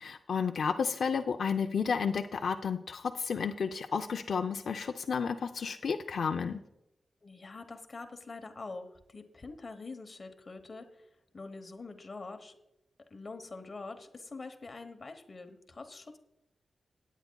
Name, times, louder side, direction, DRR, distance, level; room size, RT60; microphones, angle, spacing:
voice 1, 0.0-6.6, left 6 dB, 75° left, 5 dB, 0.5 m, -32 dB
voice 2, 7.2-12.6 13.1-16.2, left 3 dB, 35° left, 6 dB, 1.0 m, -45 dB
17.5 x 9.2 x 2.3 m, 0.87 s
wide cardioid pair, 145°, 0 cm